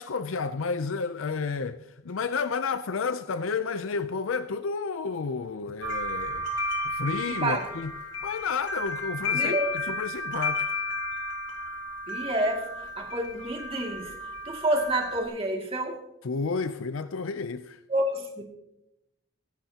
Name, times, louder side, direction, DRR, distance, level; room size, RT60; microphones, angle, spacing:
voice 1, 0.0-6.5 6.9-7.9 8.2-10.7 16.2-17.8, left 5 dB, 85° left, 0.5 m, -31 dB
sound 1, 5.8-15.2, left 2 dB, 60° left, 2.6 m, -33 dB
voice 2, 7.3-7.7 9.3-9.7 12.1-14.1 14.4-16.0 17.9-18.4, right 1 dB, 30° right, 2.3 m, -29 dB
23.5 x 11.0 x 2.9 m
head